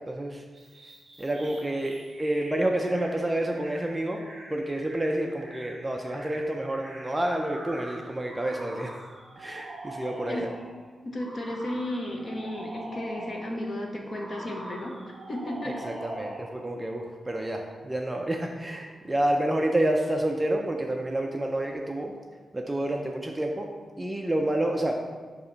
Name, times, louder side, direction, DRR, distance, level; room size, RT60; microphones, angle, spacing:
voice 1, 0.1-0.4 1.2-4.2 4.5-9.0 9.4-10.5 15.8-22.1 22.5-23.7 24.0-25.0, right 1 dB, 10° right, 1 dB, 0.4 m, -29 dB
sound 1, 0.5-10.7 11.2-13.6 14.0-16.6, right 1 dB, 30° right, 1.6 m, -43 dB
voice 2, 11.0-15.0 15.3-15.8, left 1 dB, 35° left, 1 dB, 0.8 m, -34 dB
6.7 x 2.8 x 5.5 m, 1.5 s
wide cardioid pair, 175°, 0 cm